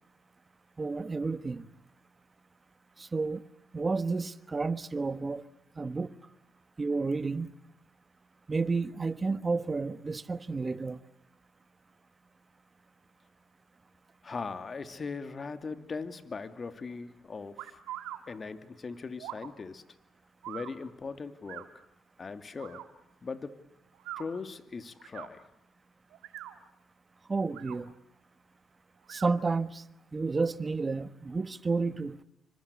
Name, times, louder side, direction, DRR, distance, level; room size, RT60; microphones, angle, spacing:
voice 1, 0.8-1.6 3.0-3.4 3.7-5.4 5.8-6.1 6.8-7.5 8.5-11.0 27.3-27.9 29.1-29.8 30.1-32.2, right 4 dB, 30° right, 1.3 m, -31 dB
voice 2, 14.2-17.8 18.3-19.8 20.5-21.7 22.2-22.9 23.2-23.6 24.2-25.5, left 4 dB, 40° left, 2.4 m, -39 dB
sound 1, 17.6-18.2 19.2-19.5 20.4-20.7 21.5-21.7 22.6-22.9 23.9-24.3 25.0-25.3 26.1-26.6 27.4-27.8 29.0-29.3, right 13 dB, 90° right, 2.2 m, -42 dB
28.0 x 25.0 x 8.4 m
cardioid pair, 75°, 0 cm